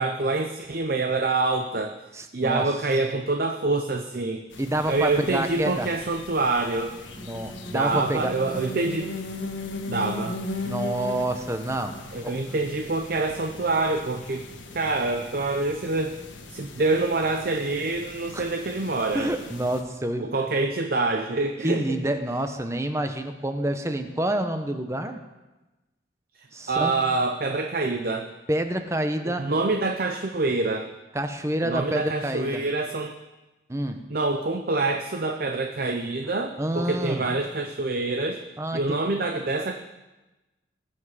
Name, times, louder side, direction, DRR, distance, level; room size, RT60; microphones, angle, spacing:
voice 1, 0.0-2.0 2.3-4.4 4.9-6.9 7.7-9.1 9.9-10.4 12.1-14.4 14.7-16.1 16.5-19.3 20.2-22.1 26.4-28.3 29.2-30.9 31.6-33.1 34.1-38.4 38.7-39.7, right 3 dB, 50° right, 4 dB, 0.7 m, -26 dB
voice 2, 2.1-2.7 4.6-5.9 7.2-8.3 10.6-11.9 12.2-12.4 18.3-18.5 19.1-20.3 21.6-25.2 26.5-26.9 28.5-29.5 31.1-32.6 33.7-34.0 36.6-37.2 38.6-38.8, right 1 dB, 15° right, 7 dB, 0.8 m, -28 dB
sound 1, 4.5-19.8, left 3 dB, 80° left, 1.3 m, -38 dB
20.0 x 7.2 x 4.9 m, 1.1 s
head